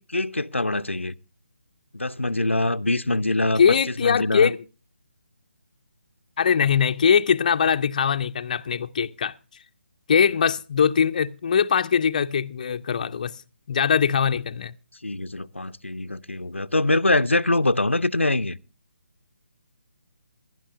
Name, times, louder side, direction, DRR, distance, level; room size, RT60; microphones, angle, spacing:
voice 1, 0.1-1.1 1.9-4.5 15.0-18.6, left 2 dB, 85° left, 0.5 m, -24 dB
voice 2, 3.6-4.6 6.4-9.3 10.1-13.4 13.7-14.7, left 7 dB, 40° left, 0.5 m, -21 dB
21.0 x 11.5 x 2.5 m
figure-of-eight pair, 145°, 6 cm